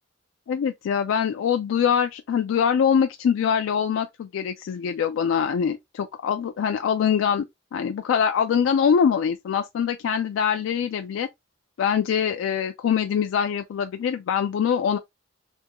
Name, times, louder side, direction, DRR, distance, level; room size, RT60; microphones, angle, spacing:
voice 1, 0.5-7.4 7.7-11.3 11.8-15.0, left 7 dB, 80° left, 0.3 m, -23 dB
3.5 x 2.2 x 2.8 m
head